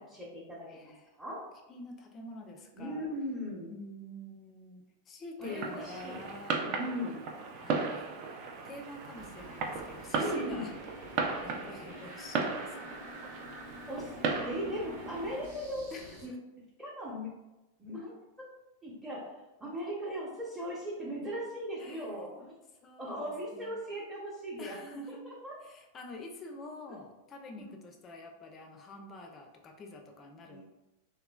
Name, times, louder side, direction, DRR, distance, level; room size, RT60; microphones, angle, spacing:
voice 1, 0.0-0.9 1.2-1.4 2.7-3.7 5.4-6.2 6.6-7.2 10.2-10.7 13.9-14.1 14.4-15.9 16.2-16.3 16.8-17.3 17.8-18.1 18.8-19.2 19.6-22.5 23.0-24.8 25.2-25.5 27.6-27.7 30.5-30.6, equal, 15° right, -7 dB, 0.7 m, -38 dB
voice 2, 0.7-1.2 1.7-3.1 3.7-6.6 7.6-8.1 8.6-10.7 11.4-13.1 15.9-16.4 21.8-22.5 22.8-23.8 24.6-25.3 25.6-30.6, left 2 dB, 30° left, 3 dB, 0.4 m, -47 dB
Fireworks, 5.4-15.5, right 4 dB, 45° right, 0.3 m, -36 dB
sound 1, 8.3-16.3, equal, 65° right, 0.7 m, -49 dB
3.0 x 2.2 x 2.2 m, 1.0 s
figure-of-eight pair, 95°, 0 cm